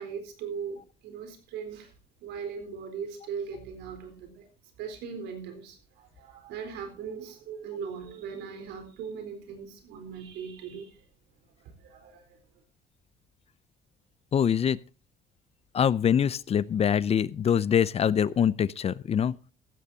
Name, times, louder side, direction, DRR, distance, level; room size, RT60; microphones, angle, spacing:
voice 1, 0.0-1.9 2.2-4.5 4.8-11.0 11.6-12.4, right 6 dB, 85° right, 4.0 m, -39 dB
voice 2, 14.3-14.8 15.7-19.3, left 8 dB, 35° left, 0.5 m, -24 dB
15.5 x 14.5 x 2.8 m
cardioid pair, 110°, 17 cm